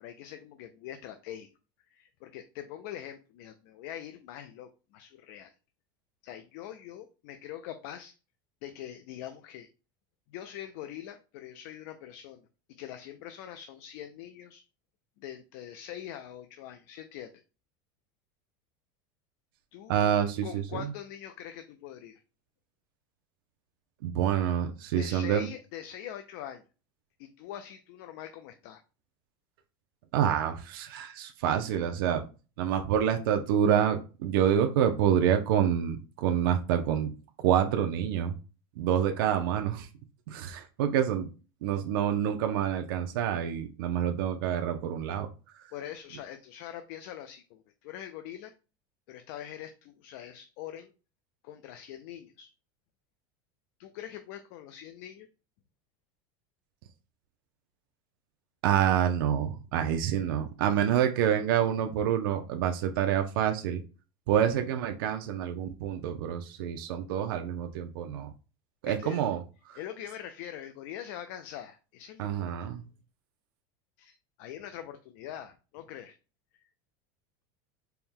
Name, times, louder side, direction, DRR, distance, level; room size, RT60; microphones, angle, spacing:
voice 1, 0.0-1.5 1.9-5.5 6.2-8.2 8.6-9.7 10.3-14.6 15.2-17.4 19.7-19.9 20.4-22.2 25.0-26.6 27.2-28.8 45.7-48.5 49.1-50.9 51.4-52.5 53.8-55.3 68.9-69.2 69.8-72.5 74.0-76.2, left 11 dB, 60° left, 8 dB, 0.4 m, -43 dB
voice 2, 19.9-20.9 24.0-25.5 30.1-32.2 32.6-37.1 37.4-38.3 38.8-39.9 40.3-41.3 41.6-45.3 45.5-45.6 58.6-63.8 64.3-68.3 68.8-69.4 69.7-69.8 72.2-72.8, right 9 dB, 80° right, 5 dB, 0.5 m, -27 dB
4.4 x 2.1 x 3.5 m, 0.33 s
supercardioid pair, 160°, 12 cm